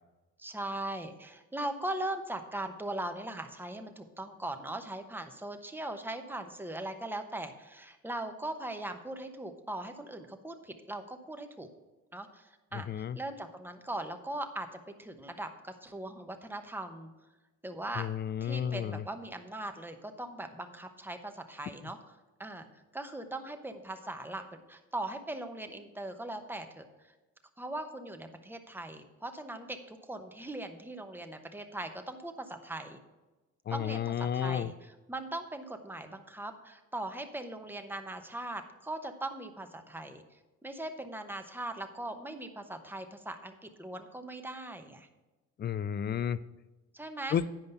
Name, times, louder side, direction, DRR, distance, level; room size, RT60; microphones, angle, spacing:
voice 1, 0.4-11.7 12.1-17.1 17.6-18.1 18.4-22.7 22.9-27.1 27.6-33.0 33.7-45.1 46.9-47.4, right 1 dB, 5° right, 6 dB, 0.9 m, -40 dB
voice 2, 12.9-13.2 18.0-19.0 33.7-34.7 45.6-46.4 47.3-47.4, left 9 dB, 35° left, 17 dB, 0.4 m, -32 dB
9.9 x 5.2 x 5.5 m, 1.1 s
cardioid pair, 90°, 30 cm